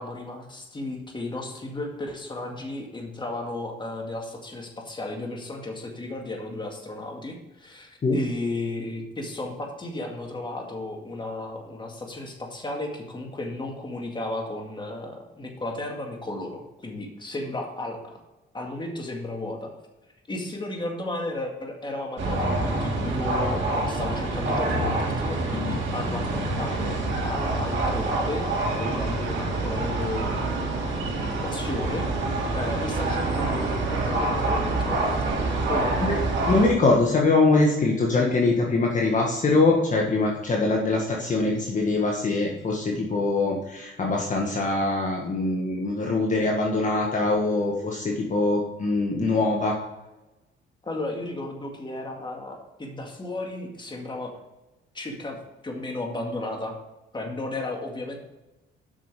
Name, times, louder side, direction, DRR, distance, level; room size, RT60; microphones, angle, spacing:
voice 1, 0.0-18.2 18.5-19.7 20.3-30.7 31.4-32.1 32.5-35.4 35.7-36.0 50.8-54.3 54.9-55.4 55.6-56.7 57.1-58.2, left 2 dB, 25° left, 2 dB, 2.0 m, -34 dB
sound 1, 22.2-36.7, right 2 dB, 65° right, 2.6 m, -26 dB
voice 2, 36.5-49.8, left 3 dB, 40° left, -1 dB, 1.6 m, -23 dB
7.8 x 6.2 x 5.0 m, 1.0 s
cardioid pair, 90°, 20 cm